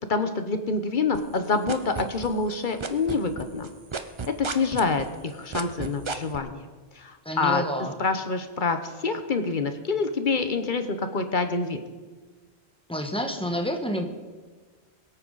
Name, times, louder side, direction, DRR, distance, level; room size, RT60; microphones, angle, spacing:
voice 1, 0.1-3.7 4.3-6.7 7.0-7.6 8.0-11.8, left 4 dB, 50° left, 8 dB, 1.1 m, -26 dB
sound 1, 1.1-2.5 2.8-6.4, right 4 dB, 30° right, 0.7 m, -32 dB
voice 2, 7.2-8.0 12.9-14.1, equal, 5° left, 4 dB, 1.3 m, -29 dB
22.0 x 9.0 x 4.0 m, 1.4 s
omnidirectional pair, 1.1 m